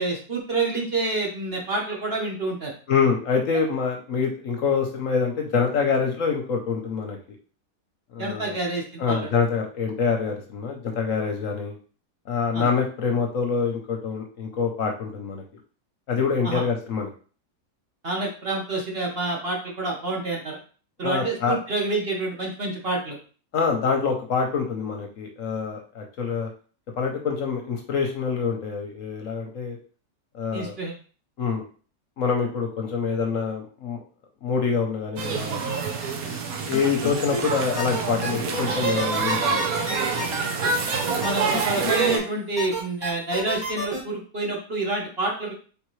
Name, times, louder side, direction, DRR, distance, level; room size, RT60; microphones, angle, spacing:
voice 1, 0.0-2.7 8.2-9.2 12.5-12.7 16.4-16.6 18.0-20.6 21.0-23.2 30.5-30.9 41.1-45.5, right 2 dB, 45° right, -2 dB, 1.1 m, -28 dB
voice 2, 2.9-7.2 8.1-8.6 9.0-11.8 12.3-15.4 16.1-17.1 21.0-21.6 23.5-26.5 27.0-29.8 30.3-30.8 31.4-31.6 32.2-34.0 34.4-35.8 36.6-39.7, left 5 dB, 60° left, 2 dB, 1.0 m, -26 dB
sound 1, 35.2-42.2, right 5 dB, 65° right, 1.2 m, -27 dB
sound 2, 36.7-37.4 37.8-42.2 42.6-44.0, left 1 dB, 15° right, 1.4 m, -30 dB
4.5 x 3.5 x 3.1 m, 0.39 s
omnidirectional pair, 1.7 m